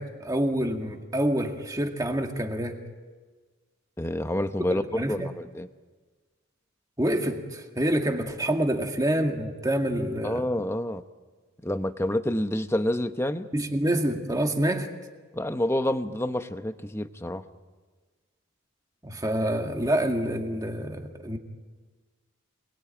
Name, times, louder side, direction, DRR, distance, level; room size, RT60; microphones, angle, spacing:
voice 1, 0.0-2.8 4.7-5.4 7.0-10.5 13.5-14.9 19.0-21.4, right 1 dB, 15° right, 3 dB, 2.0 m, -27 dB
voice 2, 4.0-5.7 10.2-11.0 11.6-13.5 15.3-17.4, left 1 dB, 10° left, 9 dB, 0.9 m, -28 dB
28.5 x 21.0 x 9.0 m, 1.4 s
head